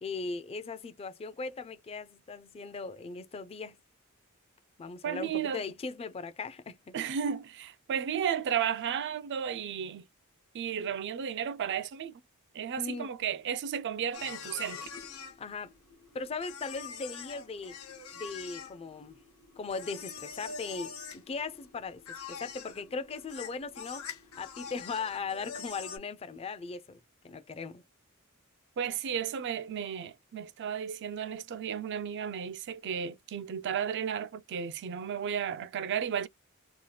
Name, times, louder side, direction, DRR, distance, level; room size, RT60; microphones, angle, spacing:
voice 1, 0.0-3.8 4.8-7.0 12.8-13.1 15.4-15.7 16.1-17.8 18.1-19.2 19.6-22.0 22.3-24.1 24.4-27.0 27.2-27.8, left 4 dB, 25° left, 0.4 m, -38 dB
voice 2, 5.0-5.6 6.9-10.0 10.5-12.1 12.5-14.9 28.8-36.3, right 8 dB, 55° right, 0.3 m, -33 dB
sound 1, 14.1-26.0, left 6 dB, 90° left, 0.8 m, -45 dB
2.8 x 2.3 x 3.1 m
head